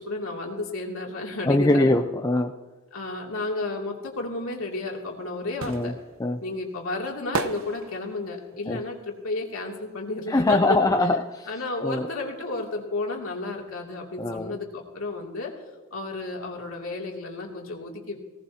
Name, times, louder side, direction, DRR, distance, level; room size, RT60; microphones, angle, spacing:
voice 1, 0.0-1.9 2.9-6.0 6.4-10.8 11.5-15.5 15.9-18.2, left 2 dB, 65° left, -1 dB, 2.8 m, -32 dB
voice 2, 1.4-2.6 5.7-5.9 6.2-6.4 8.7-8.8 10.3-11.5 11.8-12.1 14.2-14.6, left 2 dB, 15° left, 5 dB, 0.5 m, -22 dB
sound 1, 4.7-10.6 10.8-12.4 12.7-12.8, right 3 dB, 60° right, 0.8 m, -36 dB
19.5 x 18.0 x 2.9 m, 1.3 s
head